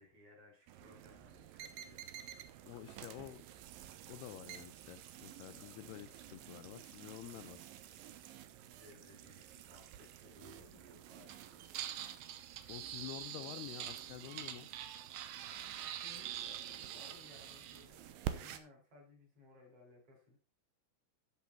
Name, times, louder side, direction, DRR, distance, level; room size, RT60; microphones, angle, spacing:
voice 1, 0.0-2.0 2.4-3.4 3.7-4.5 5.7-6.7 8.2-11.7 15.3-20.4, left 2 dB, 35° right, -2 dB, 5.7 m, -62 dB
sound 1, 0.7-18.6, right 11 dB, 75° right, 2.2 m, -47 dB
voice 2, 2.6-3.4 4.1-7.6 12.7-14.7, left 14 dB, 80° left, 11 dB, 2.5 m, -49 dB
12.0 x 7.2 x 4.3 m, 0.33 s
omnidirectional pair, 5.0 m